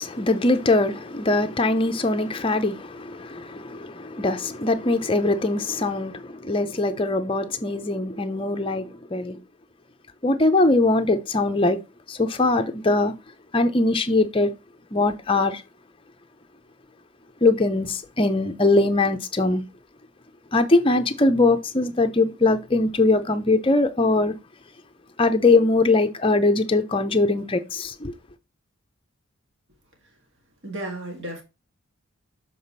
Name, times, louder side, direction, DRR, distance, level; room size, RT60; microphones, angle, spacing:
voice 1, 0.0-9.4 10.2-11.8 12.1-13.1 13.5-14.5 14.9-15.6 17.4-19.6 20.5-24.4 25.2-28.1, left 2 dB, 25° left, 0.6 m, -21 dB
voice 2, 30.6-31.4, right 1 dB, 55° right, 1.7 m, -33 dB
7.0 x 3.9 x 4.1 m
head